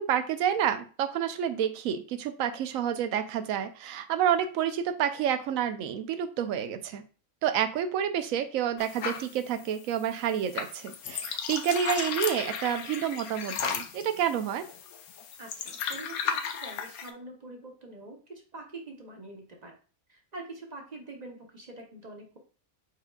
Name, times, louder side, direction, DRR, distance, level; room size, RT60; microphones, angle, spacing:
voice 1, 0.0-7.0 7.4-14.7, right 9 dB, 75° right, 10 dB, 1.0 m, -29 dB
sound 1, 8.8-17.1, left 7 dB, 75° left, 1.1 m, -35 dB
voice 2, 15.4-19.7 20.1-22.4, right 2 dB, 35° right, 2 dB, 0.8 m, -45 dB
4.9 x 4.7 x 2.3 m, 0.37 s
omnidirectional pair, 1.5 m